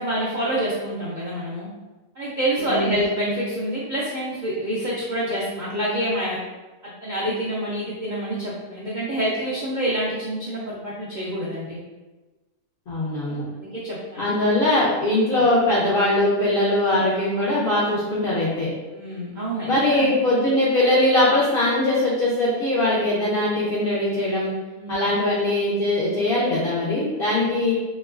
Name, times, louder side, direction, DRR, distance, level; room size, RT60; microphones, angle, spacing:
voice 1, 0.0-1.7 2.2-6.4 6.8-11.8 13.3-13.4 13.7-14.4 18.9-20.1 24.8-25.1, right 1 dB, 65° right, -7 dB, 0.4 m, -27 dB
voice 2, 2.6-2.9 12.9-13.4 14.2-18.7 19.7-24.5 24.9-27.8, left 1 dB, 65° left, -6 dB, 0.5 m, -21 dB
3.1 x 2.9 x 2.4 m, 1.2 s
omnidirectional pair, 1.5 m